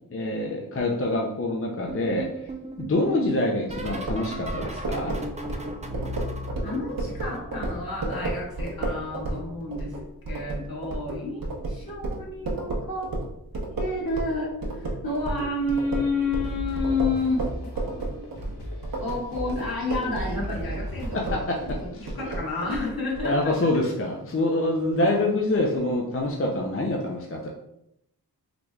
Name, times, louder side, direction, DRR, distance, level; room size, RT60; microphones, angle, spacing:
voice 1, 0.1-2.4 2.8-5.1 21.1-22.1 23.2-27.5, left 2 dB, 35° left, -1 dB, 0.5 m, -26 dB
sound 1, 1.9-8.7 8.9-10.5 11.5-11.9 12.1-12.5 14.0-14.3 14.6-14.9 16.4-16.5, right 1 dB, 20° right, 0.4 m, -38 dB
sound 2, 3.8-14.4 14.6-23.4, right 2 dB, 60° right, 0.9 m, -32 dB
voice 2, 6.6-9.9 10.3-13.1 13.8-18.4 19.0-23.5, left 2 dB, 60° left, -4 dB, 1.4 m, -30 dB
sound 3, 16.4-22.4, equal, 85° left, 0.9 m, -38 dB
3.9 x 3.1 x 2.3 m, 0.80 s
wide cardioid pair, 70°, 40 cm